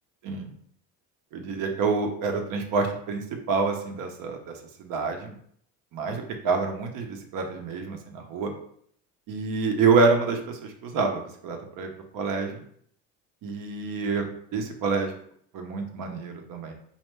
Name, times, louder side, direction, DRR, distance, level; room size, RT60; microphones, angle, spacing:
voice 1, 1.3-5.3 5.9-8.5 9.3-12.6 13.4-14.3 14.5-15.2 15.5-16.7, right 4 dB, 55° right, 4 dB, 0.9 m, -27 dB
4.2 x 2.8 x 3.3 m, 0.64 s
supercardioid pair, 115°, 41 cm